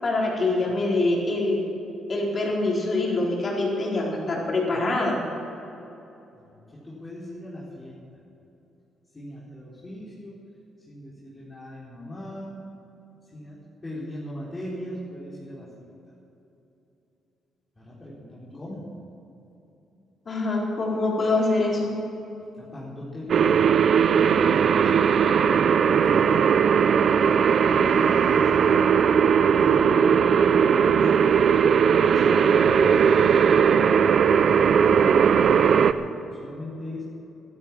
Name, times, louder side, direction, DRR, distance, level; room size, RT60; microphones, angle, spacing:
voice 1, 0.0-1.6 2.1-5.2 20.3-21.9, left 2 dB, 40° left, -3 dB, 4.3 m, -24 dB
voice 2, 6.3-7.9 9.1-10.4 10.9-12.6 13.3-15.9 17.8-18.9 22.5-23.3 23.7-25.0 25.8-29.1 29.4-31.2 31.8-33.9 34.4-37.0, equal, 20° left, -7 dB, 4.2 m, -38 dB
sound 1, 23.3-35.9, right 7 dB, 55° right, 0.6 m, -19 dB
13.5 x 13.0 x 7.4 m, 2.9 s
cardioid pair, 90°, 0 cm